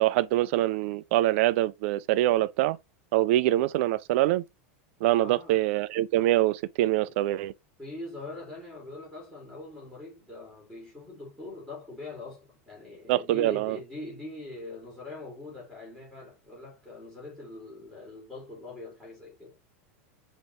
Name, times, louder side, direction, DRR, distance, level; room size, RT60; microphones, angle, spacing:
voice 1, 0.0-2.8 3.1-4.4 5.0-7.5 13.1-13.8, right 15 dB, 65° right, 0.4 m, -24 dB
voice 2, 5.1-5.6 7.0-7.2 7.8-19.6, left 2 dB, 5° left, 2.6 m, -43 dB
5.4 x 2.9 x 3.2 m
supercardioid pair, 125°, 7 cm